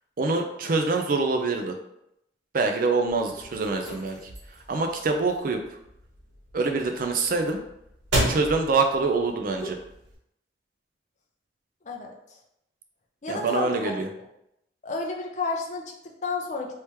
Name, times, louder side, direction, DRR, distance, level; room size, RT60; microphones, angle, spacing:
voice 1, 0.2-1.8 2.5-4.2 4.7-5.6 6.5-7.6 8.3-9.8 13.3-14.1, right 3 dB, 50° right, 4 dB, 0.4 m, -25 dB
sound 1, 3.1-10.1, right 1 dB, 90° right, 1.3 m, -34 dB
voice 2, 11.8-12.4 13.2-13.9 14.8-16.8, left 3 dB, 40° left, 1 dB, 0.5 m, -31 dB
3.2 x 2.9 x 3.4 m, 0.81 s
head